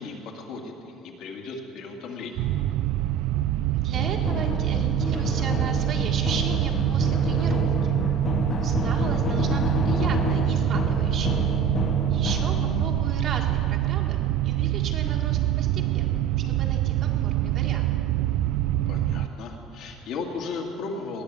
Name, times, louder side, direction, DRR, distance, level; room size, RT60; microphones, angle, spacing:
voice 1, 0.0-2.5 18.9-21.2, left 4 dB, 60° left, 1 dB, 1.9 m, -36 dB
sound 1, 2.4-19.3, right 13 dB, 70° right, 0.3 m, -25 dB
voice 2, 3.7-8.0 8.6-11.3 12.1-17.9, right 4 dB, 45° right, 1 dB, 1.8 m, -36 dB
sound 2, 3.9-13.1, left 5 dB, 30° left, 0.7 m, -30 dB
19.5 x 6.8 x 9.5 m, 2.9 s
cardioid pair, 155°, 0 cm